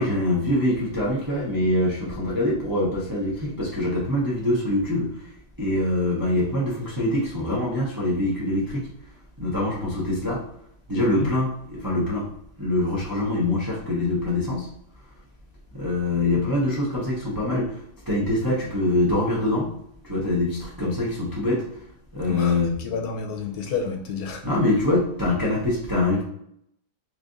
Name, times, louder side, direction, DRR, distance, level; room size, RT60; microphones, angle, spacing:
voice 1, 0.0-5.3 5.6-8.9 9.4-10.4 10.9-12.3 12.6-14.7 15.7-17.8 18.1-19.7 20.0-21.8 22.1-22.8 24.4-26.2, left 1 dB, 35° right, 0.3 m, -24 dB
voice 2, 22.2-24.5, left 5 dB, 70° left, 1.1 m, -30 dB
3.2 x 2.5 x 3.7 m
omnidirectional pair, 1.8 m